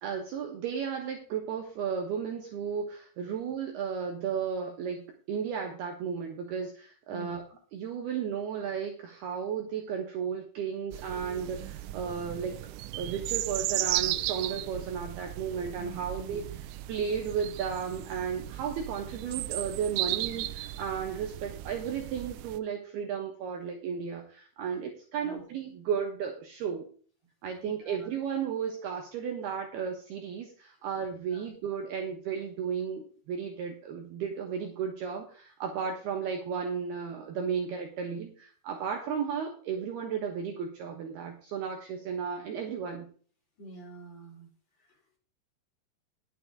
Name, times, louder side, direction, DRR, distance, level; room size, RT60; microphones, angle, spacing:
voice 1, 0.0-7.4 7.7-12.5 12.9-16.4 16.9-26.8 27.4-43.1, right 7 dB, 65° right, 2 dB, 2.7 m, -34 dB
sound 1, 10.9-22.6, right 15 dB, 85° right, 3.2 m, -36 dB
voice 2, 15.8-16.6 25.2-25.4 27.6-28.1 31.3-31.5 43.6-44.5 44.8-45.2, right 1 dB, 20° left, -2 dB, 5.3 m, -47 dB
11.5 x 8.3 x 4.7 m, 0.43 s
omnidirectional pair, 5.8 m